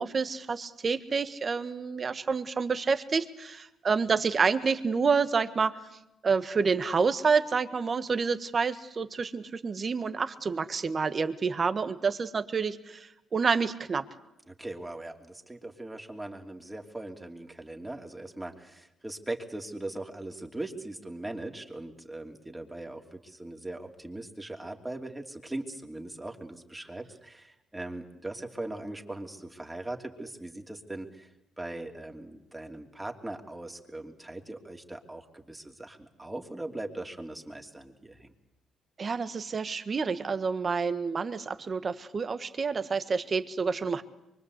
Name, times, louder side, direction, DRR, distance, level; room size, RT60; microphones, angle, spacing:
voice 1, 0.0-5.8 6.2-14.0 39.0-44.0, right 5 dB, 40° right, 11 dB, 1.6 m, -28 dB
voice 2, 14.5-31.3 31.6-38.3, right 2 dB, 10° right, 3 dB, 3.0 m, -40 dB
24.5 x 24.0 x 8.3 m, 0.88 s
cardioid pair, 90°, 0 cm